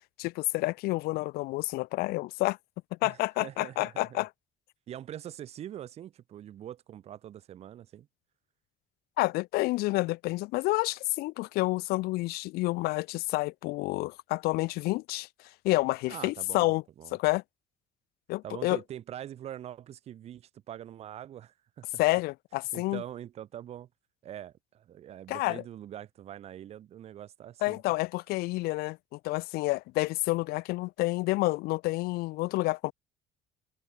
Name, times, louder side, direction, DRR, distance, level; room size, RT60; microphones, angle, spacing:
voice 1, 0.2-2.6 2.9-4.3 9.2-15.3 15.6-16.8 17.1-17.4 18.3-18.8 22.0-23.0 25.3-25.6 27.6-32.9, left 21 dB, 80° left, 0.5 m, -29 dB
voice 2, 3.0-4.2 4.9-8.1 16.1-17.2 18.4-21.9 22.7-23.9 24.2-27.8, right 11 dB, 40° right, 0.6 m, -43 dB
cardioid pair, 145°, 16 cm